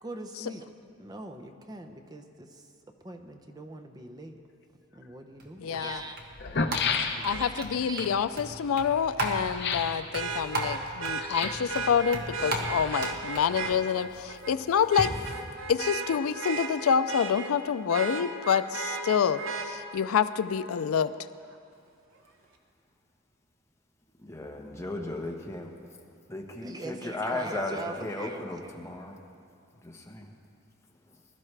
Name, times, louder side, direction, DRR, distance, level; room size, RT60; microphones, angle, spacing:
voice 1, 0.0-0.7 1.0-2.7 3.0-4.4 4.9-6.2 6.5-6.6 6.9-8.2 26.6-28.7, right 2 dB, 20° right, 4 dB, 0.6 m, -42 dB
sound 1, 5.0-5.1 6.0-6.1 6.3-7.6 9.5-10.0 11.2-11.7 12.6-13.4 13.7-13.8, left 5 dB, 55° left, 0.7 m, -31 dB
sound 2, 5.4-15.1, right 1 dB, 45° right, 1.5 m, -37 dB
voice 2, 5.6-6.0 7.2-15.1 15.7-21.1, left 7 dB, 90° left, 13 dB, 0.4 m, -27 dB
Vehicle horn car horn honking, 7.3-7.4 10.1-13.8 14.3-14.5 14.9-17.5 17.9-19.7 21.5-21.6, right 4 dB, 75° right, 1.0 m, -35 dB
voice 3, 24.2-25.7 26.3-29.2 29.8-30.3 31.0-31.2, left 2 dB, 15° left, 0 dB, 1.1 m, -36 dB
21.0 x 12.0 x 3.3 m, 2.4 s
head